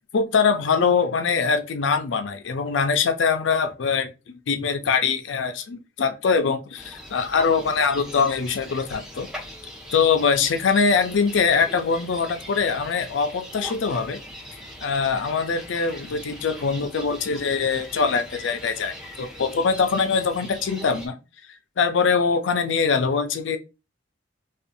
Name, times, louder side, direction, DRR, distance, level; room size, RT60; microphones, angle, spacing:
voice 1, 0.1-9.3 9.9-14.2 14.8-21.2 21.8-23.6, left 5 dB, 85° left, 0.5 m, -23 dB
sound 1, 6.8-21.1, equal, 5° right, 0.8 m, -41 dB
2.6 x 2.3 x 2.6 m
head